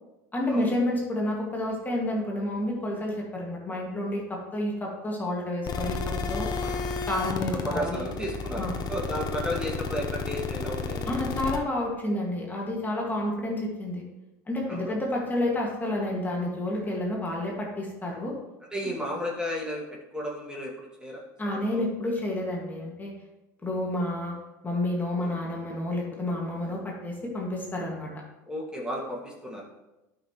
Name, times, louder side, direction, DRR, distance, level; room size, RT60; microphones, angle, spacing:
voice 1, 0.3-6.5 7.1-8.0 8.6-8.7 11.1-14.0 14.5-18.3 21.4-23.1 23.6-24.3 24.6-28.1, left 1 dB, 15° left, -2 dB, 2.0 m, -30 dB
sound 1, 5.6-11.6, left 4 dB, 40° left, 0.9 m, -31 dB
voice 2, 7.4-11.1 14.7-14.9 18.7-19.8 20.1-22.1 28.4-29.6, equal, 10° right, -3 dB, 2.0 m, -34 dB
11.5 x 5.8 x 3.1 m, 1.0 s
hypercardioid pair, 85°, 10 cm